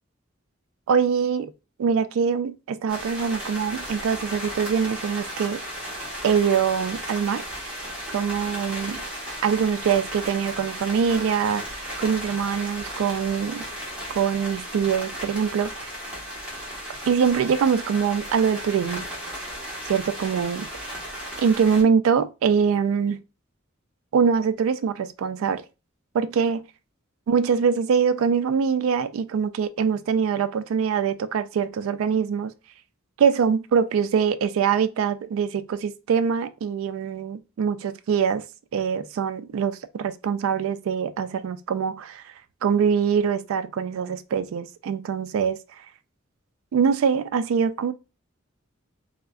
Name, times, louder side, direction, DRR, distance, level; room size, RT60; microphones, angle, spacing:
voice 1, 0.9-1.5 1.8-5.6 6.2-7.4 8.1-9.0 9.4-13.6 14.1-15.9 17.0-19.1 19.9-21.0 21.4-23.2 24.1-25.6 26.1-26.6 27.3-32.5 33.2-38.4 38.7-42.3 42.6-45.6 46.7-47.9, right 6 dB, 75° right, 0.3 m, -23 dB
sound 1, 2.9-21.8, equal, 5° right, 1.1 m, -35 dB
3.5 x 2.0 x 2.3 m
head